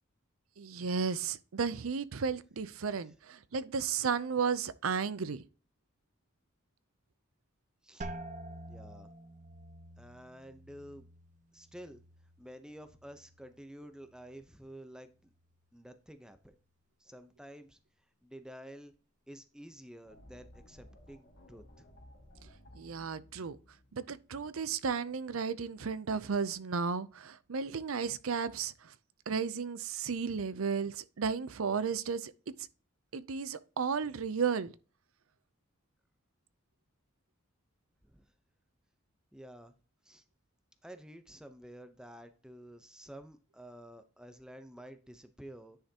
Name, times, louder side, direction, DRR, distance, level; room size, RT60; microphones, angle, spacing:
voice 1, 0.6-5.4 22.7-23.6 23.9-28.9 29.3-32.3 33.1-34.7, right 5 dB, 85° right, 0.6 m, -34 dB
sound 1, 8.0-13.6 14.0-14.7 15.2-15.6, right 1 dB, 35° right, 0.8 m, -49 dB
voice 2, 8.7-9.1 10.0-11.1 11.5-12.0 12.4-15.3 15.7-16.5 17.0-17.8 18.2-18.9 19.3-21.9 38.0-38.3 39.3-39.7 40.0-40.2 40.8-45.8, equal, 5° right, 0.8 m, -50 dB
sound 2, 20.0-25.0, left 1 dB, 55° left, 1.7 m, -58 dB
9.9 x 5.7 x 2.9 m
head